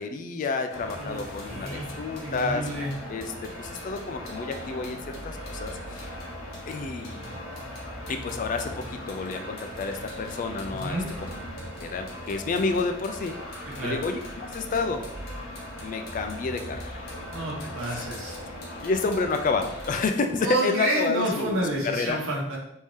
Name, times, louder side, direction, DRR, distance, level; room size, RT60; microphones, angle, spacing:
voice 1, 0.0-2.7 3.1-3.3 3.6-6.1 6.7-7.2 8.1-11.0 11.8-15.0 15.8-16.8 17.8-18.4 18.8-22.2, left 4 dB, 40° left, 6 dB, 0.3 m, -30 dB
sound 1, 0.7-20.1, left 1 dB, 90° left, 1.0 m, -39 dB
voice 2, 1.0-2.9 10.7-11.1 13.8-14.0 17.3-18.4 20.4-22.6, right 1 dB, 80° right, -3 dB, 1.0 m, -30 dB
3.5 x 2.7 x 3.1 m, 0.76 s
head